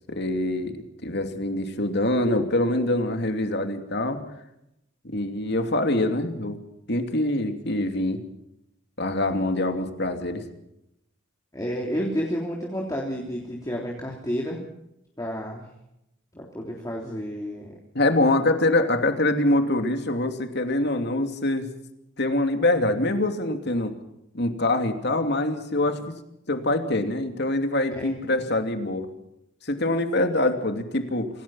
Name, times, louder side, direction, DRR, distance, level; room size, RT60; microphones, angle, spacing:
voice 1, 0.1-0.7 1.0-4.2 5.0-6.6 6.9-8.2 9.0-10.4 17.9-21.7 22.2-23.9 24.3-26.1 26.5-29.1 29.6-31.3, left 1 dB, 60° left, 6 dB, 2.9 m, -24 dB
voice 2, 11.5-14.6 15.2-15.7 16.3-17.8 27.9-28.4, equal, 20° left, -1 dB, 3.4 m, -31 dB
26.5 x 18.5 x 5.7 m, 0.81 s
head